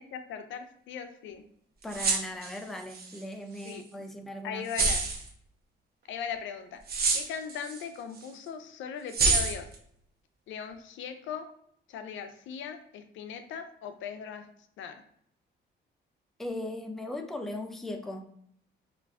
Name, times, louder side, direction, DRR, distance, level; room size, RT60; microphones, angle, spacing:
voice 1, 0.0-1.4 3.6-4.1 4.4-5.1 6.1-6.8 7.1-9.7 10.5-11.5 11.9-14.5 14.8-15.0, left 7 dB, 75° left, 8 dB, 0.4 m, -39 dB
voice 2, 1.8-4.7 16.4-18.3, left 1 dB, ahead, 5 dB, 0.3 m, -38 dB
sound 1, 1.8-3.2 3.6-3.7 4.7-5.3 6.9-7.8 8.2-8.3 9.1-9.8, right 4 dB, 50° right, 0.7 m, -27 dB
2.4 x 2.2 x 3.4 m, 0.69 s
cardioid pair, 90°, 20 cm